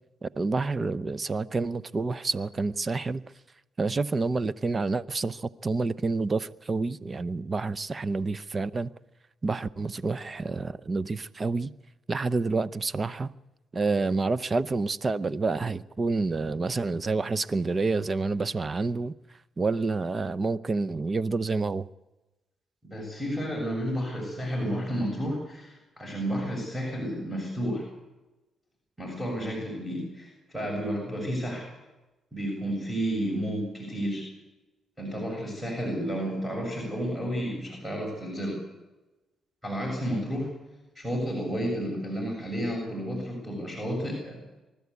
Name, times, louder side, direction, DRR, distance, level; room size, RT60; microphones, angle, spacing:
voice 1, 0.2-3.2 3.8-8.9 9.4-11.7 12.1-13.3 13.7-19.1 19.6-21.9, right 3 dB, 30° right, 0.7 m, -28 dB
voice 2, 22.8-27.9 29.0-31.7 32.3-34.3 35.0-38.6 39.6-40.5 41.0-44.4, equal, ahead, 7.1 m, -31 dB
25.0 x 13.0 x 8.3 m
cardioid pair, 90°, 0 cm